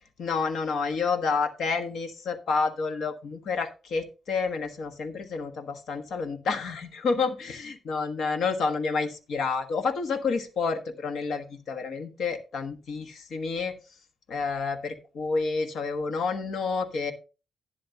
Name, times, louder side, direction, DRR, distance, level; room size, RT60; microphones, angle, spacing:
voice 1, 0.2-13.8 14.3-17.1, left 4 dB, 55° left, 8 dB, 1.3 m, -29 dB
11.5 x 9.7 x 2.8 m, 0.33 s
wide cardioid pair, 180°, 0 cm